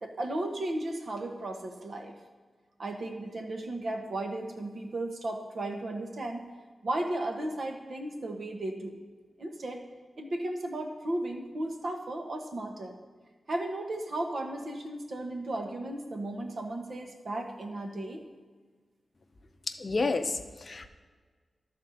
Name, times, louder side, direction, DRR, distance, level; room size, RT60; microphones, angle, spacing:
voice 1, 0.0-2.1 2.8-6.4 6.8-9.0 9.4-9.8 10.2-12.9 13.5-18.2, right 1 dB, 55° right, 2 dB, 1.1 m, -35 dB
voice 2, 19.7-20.9, left 3 dB, 40° left, 7 dB, 0.6 m, -30 dB
12.0 x 4.3 x 6.5 m, 1.5 s
wide cardioid pair, 125°, 0 cm